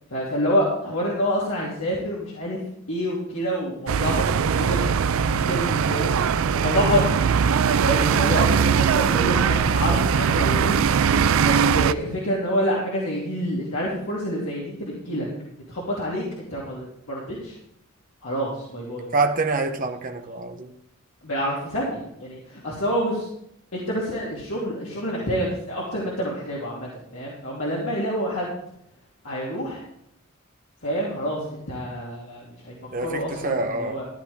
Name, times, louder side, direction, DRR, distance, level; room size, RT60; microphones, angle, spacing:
voice 1, 0.1-2.6 2.9-4.8 5.2-6.1 6.5-7.0 7.8-10.8 11.4-15.3 15.5-17.6 18.2-19.1 21.2-23.3 23.7-28.5 29.2-29.8 30.8-32.7 33.0-34.0, equal, 80° left, 2.7 m, -27 dB
sound 1, 3.9-11.9, right 6 dB, 85° right, 0.4 m, -20 dB
voice 2, 19.1-20.7 32.9-34.0, right 3 dB, 40° right, 0.9 m, -26 dB
14.0 x 9.7 x 3.6 m
head